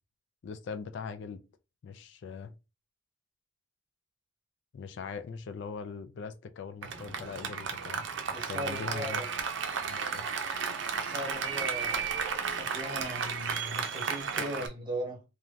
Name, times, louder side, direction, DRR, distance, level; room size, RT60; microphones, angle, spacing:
voice 1, 0.4-1.4 1.8-2.5 4.7-8.0 8.5-9.2 9.8-10.3 14.3-14.7, left 5 dB, 60° left, 0.3 m, -41 dB
Applause, 6.8-14.7, right 6 dB, 65° right, 0.5 m, -33 dB
voice 2, 8.3-9.3 11.0-15.2, equal, 25° right, 1.1 m, -39 dB
3.1 x 2.4 x 2.5 m
head